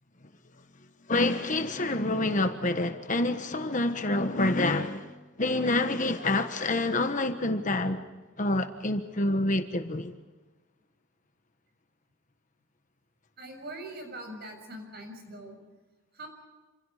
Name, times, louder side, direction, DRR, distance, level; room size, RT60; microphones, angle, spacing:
voice 1, 1.1-5.1 5.4-8.0 8.4-10.1, left 2 dB, 35° left, 1.3 m, -27 dB
voice 2, 13.4-15.6 16.1-16.3, right 1 dB, 50° right, 6.8 m, -42 dB
28.5 x 27.5 x 5.1 m
head